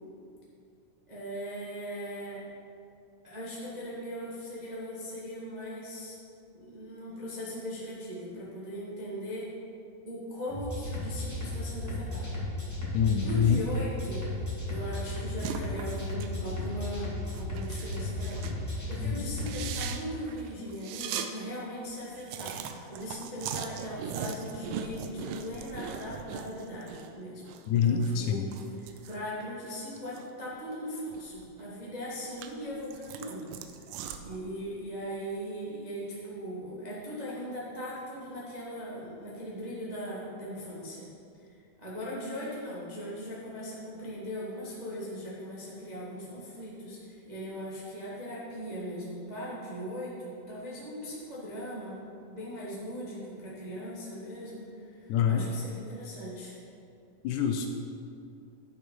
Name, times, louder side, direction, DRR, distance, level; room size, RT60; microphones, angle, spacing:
voice 1, 1.1-2.4 3.2-6.1 6.5-9.5 10.0-12.4 13.2-14.3 14.6-22.6 22.9-28.5 28.8-33.4 34.2-41.1 41.8-52.0 52.3-56.5, equal, 60° right, -8 dB, 0.4 m, -39 dB
sound 1, 10.5-19.8, left 1 dB, 10° left, 1.1 m, -35 dB
voice 2, 12.9-13.6 19.0-19.2 27.7-28.4 55.1-55.5 57.2-57.7, left 7 dB, 80° left, 4 dB, 1.9 m, -25 dB
sound 2, 15.4-16.3 16.6-16.8 17.3-18.6 18.9-19.0 19.4-21.3 21.6-21.7 21.9-27.1 27.4-30.3 30.7-31.7 32.1-34.4, right 8 dB, 85° right, 2.2 m, -40 dB
9.9 x 6.3 x 5.3 m, 2.5 s
omnidirectional pair, 3.9 m